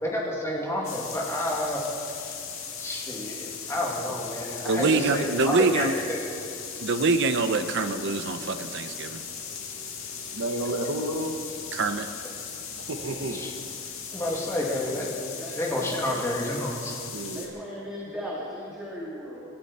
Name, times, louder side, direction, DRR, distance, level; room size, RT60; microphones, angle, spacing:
voice 1, 0.0-1.8 2.2-2.3 2.8-6.2 13.3-13.5 14.1-15.1 15.6-16.9, left 1 dB, 15° left, -3 dB, 2.6 m, -30 dB
sound 1, 0.8-17.5, left 6 dB, 80° left, 2.2 m, -38 dB
voice 2, 4.6-5.9 6.8-9.3 11.7-12.1, right 3 dB, 60° right, 8 dB, 0.8 m, -25 dB
voice 3, 10.3-11.3 12.8-13.4 14.6-14.7 17.1-17.5, right 1 dB, 85° right, 1 dB, 1.2 m, -31 dB
voice 4, 15.4-16.2 17.3-19.4, equal, 5° right, -6 dB, 2.2 m, -37 dB
25.5 x 13.0 x 4.3 m, 2.5 s
head